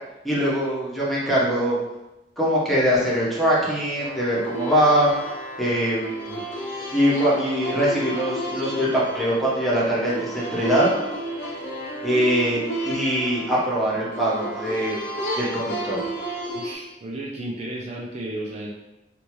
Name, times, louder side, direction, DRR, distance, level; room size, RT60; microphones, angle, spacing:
voice 1, 0.2-1.8 2.4-5.1 5.6-6.3 6.9-10.9 12.0-15.0 15.4-16.0, equal, ahead, -7 dB, 0.9 m, -22 dB
sound 1, 4.0-16.8, right 1 dB, 85° left, 0.9 m, -32 dB
voice 2, 16.5-18.7, right 1 dB, 40° right, -2 dB, 0.4 m, -33 dB
3.3 x 2.7 x 3.0 m, 0.97 s
head